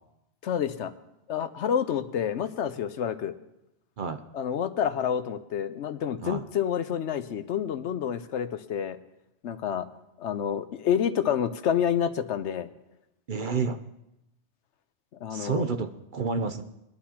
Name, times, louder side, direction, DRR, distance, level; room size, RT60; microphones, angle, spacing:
voice 1, 0.4-0.9 1.3-3.3 4.3-9.0 9.4-9.9 10.2-12.7 15.2-15.6, left 8 dB, 75° left, 11 dB, 1.0 m, -28 dB
voice 2, 13.3-13.8 15.3-16.6, right 5 dB, 50° right, 7 dB, 0.8 m, -29 dB
21.0 x 11.5 x 2.9 m, 0.88 s
omnidirectional pair, 1.2 m